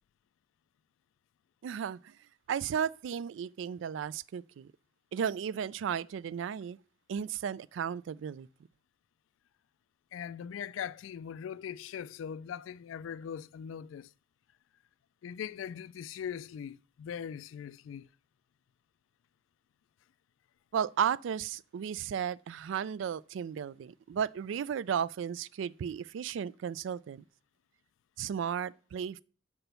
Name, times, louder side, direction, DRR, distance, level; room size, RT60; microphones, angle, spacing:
voice 1, 1.6-2.1 2.5-4.7 5.1-6.8 7.1-8.5 20.7-27.2 28.2-29.2, right 8 dB, 70° right, 0.3 m, -34 dB
voice 2, 10.1-14.1 15.2-18.1, left 8 dB, 80° left, 0.3 m, -40 dB
6.1 x 5.5 x 6.7 m
head